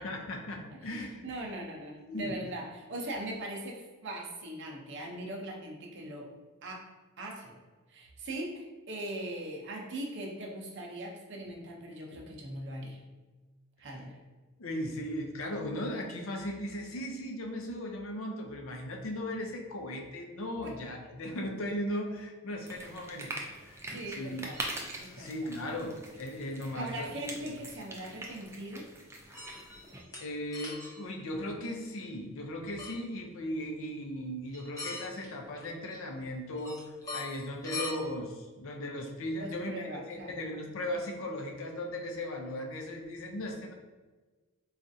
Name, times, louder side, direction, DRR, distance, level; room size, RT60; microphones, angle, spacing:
voice 1, 0.0-1.3 2.1-2.3 12.1-12.2 14.6-23.3 23.6-23.9 24.2-24.4 25.2-27.1 27.4-27.6 30.2-36.8 37.1-43.7, left 1 dB, 60° left, 2 dB, 0.5 m, -37 dB
voice 2, 0.7-6.3 6.6-6.9 7.2-7.6 7.9-13.0 13.8-14.2 20.6-20.7 23.9-24.6 25.0-25.3 26.7-28.9 39.4-40.3, right 1 dB, 55° right, 0 dB, 0.6 m, -40 dB
sound 1, 22.6-30.0, right 1 dB, 10° right, 0.3 m, -43 dB
sound 2, 24.5-25.1 26.3-26.4 27.1-27.2 29.3-30.2 30.5-31.0 32.8-33.0 34.5-35.3 35.6-36.2 36.5-37.9, left 3 dB, 15° left, 0.7 m, -42 dB
4.2 x 2.4 x 2.6 m, 1.3 s
head